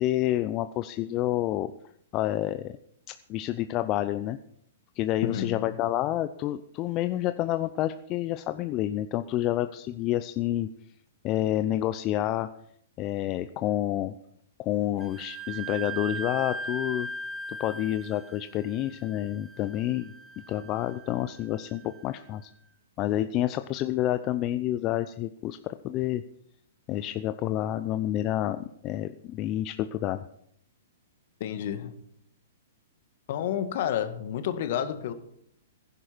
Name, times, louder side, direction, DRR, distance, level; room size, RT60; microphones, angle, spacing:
voice 1, 0.0-1.7 2.1-2.7 3.3-4.4 5.0-10.7 11.2-12.5 13.0-14.1 14.6-17.1 17.6-20.1 20.5-22.5 23.0-26.2 26.9-30.2, left 13 dB, 35° left, 0.6 m, -29 dB
voice 2, 5.2-5.7 31.4-31.9 33.3-35.1, left 10 dB, 55° left, 1.7 m, -30 dB
Wind instrument woodwind instrument, 15.0-22.4, right 2 dB, 15° right, 1.4 m, -39 dB
16.0 x 11.0 x 4.5 m
hypercardioid pair, 115°, 0 cm